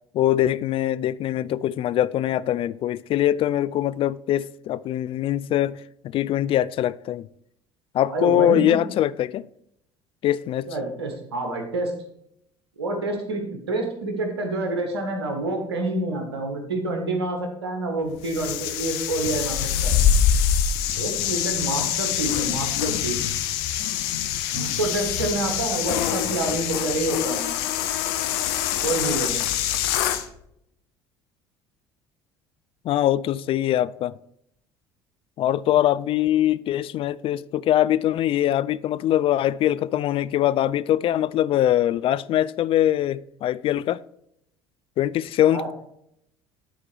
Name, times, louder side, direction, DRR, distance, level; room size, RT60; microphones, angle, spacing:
voice 1, 0.1-5.8 6.1-7.3 7.9-9.5 10.2-10.7 32.8-34.2 35.4-44.0 45.0-45.9, left 12 dB, 45° left, 0.4 m, -22 dB
voice 2, 8.1-8.8 10.7-11.9 12.8-19.9 21.0-23.2 24.5-27.5 28.8-29.4 45.5-45.7, right 2 dB, 80° right, 1.6 m, -28 dB
sound 1, 18.2-30.3, left 9 dB, 65° left, 0.8 m, -25 dB
11.5 x 4.4 x 4.6 m
figure-of-eight pair, 60°, 13 cm